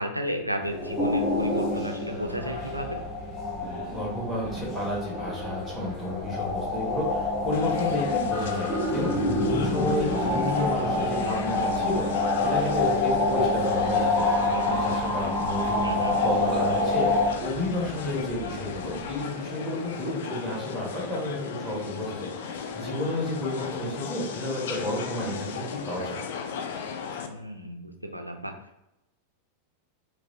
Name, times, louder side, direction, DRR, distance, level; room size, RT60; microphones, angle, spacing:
voice 1, 0.0-3.0 15.8-16.2 27.3-28.5, equal, 90° right, 4 dB, 0.4 m, -33 dB
sound 1, 0.6-17.3, left 2 dB, 15° left, 0.8 m, -27 dB
sound 2, 2.2-19.2, right 3 dB, 20° right, 0.7 m, -45 dB
voice 2, 3.9-26.2, left 1 dB, ahead, -4 dB, 1.5 m, -32 dB
sound 3, 7.5-27.3, left 6 dB, 55° left, 0.3 m, -36 dB
4.7 x 2.0 x 2.6 m, 0.90 s
figure-of-eight pair, 90°, 0 cm